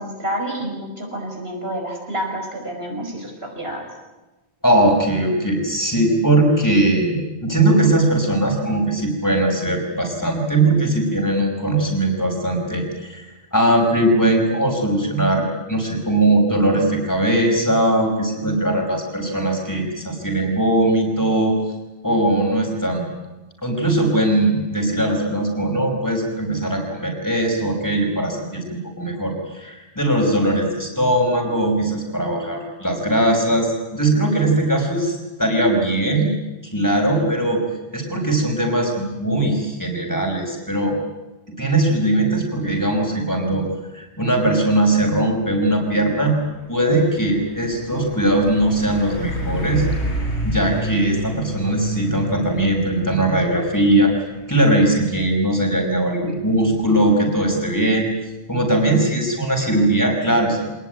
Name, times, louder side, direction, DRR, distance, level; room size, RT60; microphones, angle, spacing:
voice 1, 0.0-3.9, right 1 dB, 60° right, 1 dB, 5.9 m, -29 dB
voice 2, 4.6-21.6 22.0-23.1 23.6-36.3 36.6-37.6 37.9-41.0 41.5-43.7 43.9-46.4 46.7-49.9 50.4-54.1 54.5-58.1 58.5-60.7, right 1 dB, 15° left, 1 dB, 5.3 m, -20 dB
Truck, 45.4-59.5, equal, 80° left, 4.7 m, -31 dB
25.5 x 19.5 x 9.2 m, 1.1 s
omnidirectional pair, 1.1 m